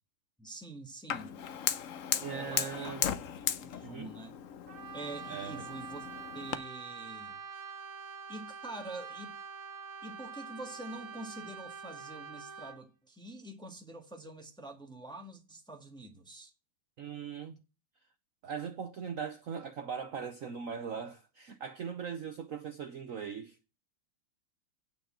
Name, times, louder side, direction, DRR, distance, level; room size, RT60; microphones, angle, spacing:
voice 1, 0.4-1.4 2.3-3.1 3.6-4.3 4.9-6.1 6.3-7.4 8.3-9.3 10.0-16.5, right 2 dB, ahead, 1.3 m, -46 dB
Fire, 1.1-6.6, left 9 dB, 90° left, 0.7 m, -36 dB
voice 2, 2.2-3.1 3.8-4.1 5.3-5.6 17.0-17.6 18.4-23.6, right 7 dB, 55° right, 0.9 m, -40 dB
Brass instrument, 4.7-12.8, right 5 dB, 75° right, 2.5 m, -45 dB
9.4 x 5.3 x 7.4 m
omnidirectional pair, 2.3 m